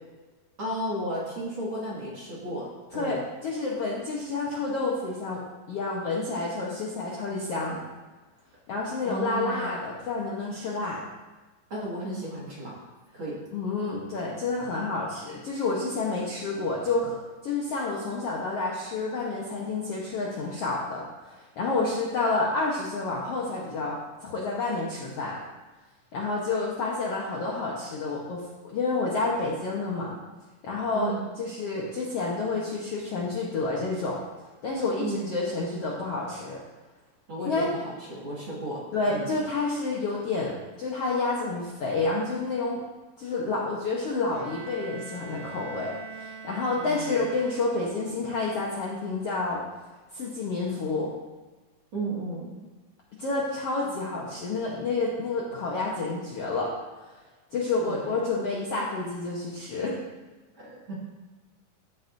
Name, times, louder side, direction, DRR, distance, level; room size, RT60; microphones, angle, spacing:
voice 1, 0.6-2.7 2.9-3.2 9.0-9.7 11.7-12.8 13.1-13.4 30.9-31.3 35.0-35.4 37.3-39.4 46.8-47.3 51.9-52.5 53.8-53.9 57.9-58.0 60.6-60.9, right 1 dB, 40° right, -6 dB, 2.4 m, -34 dB
voice 2, 2.9-5.4 5.7-7.8 8.7-11.0 13.5-17.2 17.4-25.4 26.1-30.2 30.6-34.2 34.6-36.6 37.5-37.7 38.9-42.8 43.2-49.6 50.1-51.1 53.1-56.7 57.5-59.9, left 3 dB, 65° left, -3 dB, 1.6 m, -29 dB
Bowed string instrument, 44.3-48.1, right 5 dB, 70° right, 2.7 m, -43 dB
14.0 x 8.3 x 2.7 m, 1.3 s
omnidirectional pair, 4.1 m